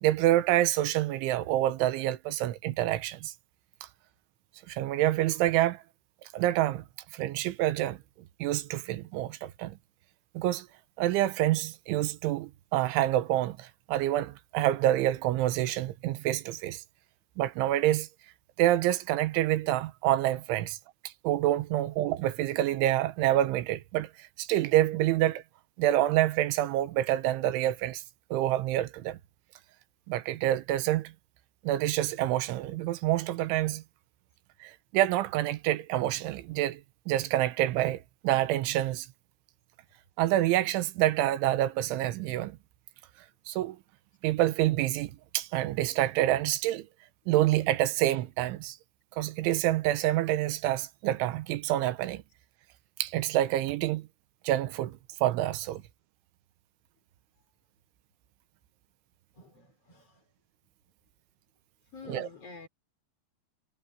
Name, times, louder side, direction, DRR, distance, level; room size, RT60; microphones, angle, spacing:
voice 1, 0.0-3.3 4.7-5.8 6.3-6.9 7.1-8.0 8.4-9.8 10.4-10.7 11.0-16.8 17.4-18.1 18.6-20.8 21.1-25.4 25.8-28.0 28.3-29.2 30.1-31.1 31.7-33.8 34.6-36.8 37.1-39.1 40.2-42.6 43.5-43.8 44.2-46.9 47.3-48.8 49.2-52.2 53.0-54.1 54.5-55.8 62.1-62.3, right 14 dB, 90° right, 3.4 m, -27 dB
voice 2, 59.4-60.2 61.9-62.7, left 4 dB, 35° left, 5.2 m, -47 dB
omnidirectional pair, 5.4 m